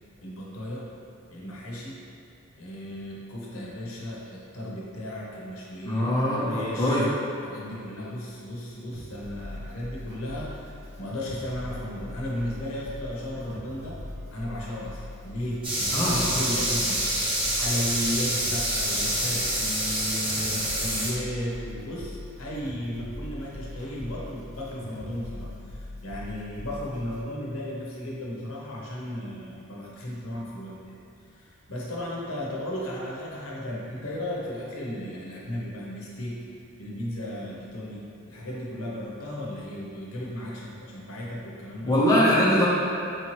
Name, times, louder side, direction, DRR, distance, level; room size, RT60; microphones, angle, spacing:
voice 1, 0.2-0.9 1.3-2.0 2.6-7.0 7.4-14.0 14.3-17.1 17.5-31.0 31.3-36.5 36.8-42.2, equal, 80° left, -5 dB, 0.8 m, -35 dB
voice 2, 5.9-7.1 15.9-16.2 41.8-42.7, equal, 15° left, -7 dB, 0.6 m, -22 dB
sound 1, 8.9-27.2, left 1 dB, 65° right, 0.8 m, -41 dB
sound 2, 15.6-21.1, right 1 dB, 25° right, 0.9 m, -27 dB
4.7 x 2.9 x 3.0 m, 2.6 s
head